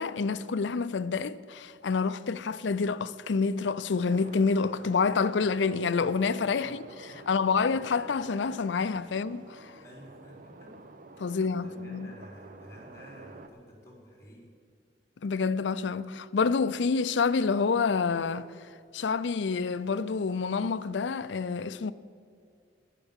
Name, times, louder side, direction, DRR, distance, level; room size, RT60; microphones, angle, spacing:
voice 1, 0.0-9.7 11.2-12.1 15.2-18.5 18.9-21.9, left 5 dB, 70° left, 0.5 m, -28 dB
sound 1, 4.1-13.5, right 3 dB, 50° right, 0.8 m, -49 dB
voice 2, 9.8-10.7 11.3-14.5, equal, 15° left, 3.9 m, -51 dB
11.0 x 10.5 x 7.3 m
head